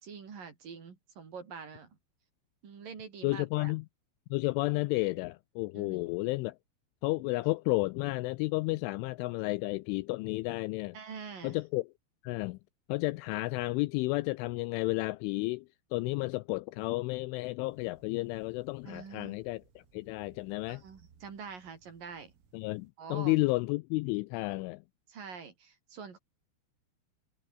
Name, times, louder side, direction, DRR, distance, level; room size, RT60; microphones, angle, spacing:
voice 1, 0.0-1.9 2.6-3.7 5.7-6.1 10.9-11.6 18.8-19.4 20.7-22.3 23.0-23.4 25.1-26.2, right 6 dB, 45° right, 4.9 m, -45 dB
voice 2, 3.2-3.9 4.3-6.6 7.0-11.0 11.4-11.9 12.2-12.6 12.9-15.7 15.9-20.8 22.5-24.8, left 22 dB, 85° left, 2.8 m, -32 dB
sound 1, 17.7-22.9, right 7 dB, 90° right, 7.9 m, -64 dB
omnidirectional pair, 5.9 m